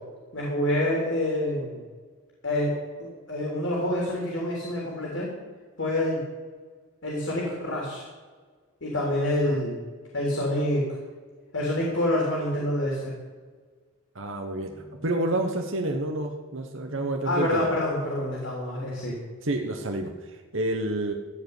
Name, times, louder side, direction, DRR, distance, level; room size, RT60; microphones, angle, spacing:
voice 1, 0.3-1.8 2.4-5.3 5.8-6.2 7.0-8.0 8.8-9.8 10.1-11.0 11.5-13.1 17.3-19.1, left 1 dB, 65° left, -3 dB, 3.5 m, -27 dB
voice 2, 14.1-17.7 19.4-21.1, right 1 dB, 70° right, 3 dB, 1.2 m, -29 dB
15.5 x 5.3 x 9.8 m, 1.5 s
head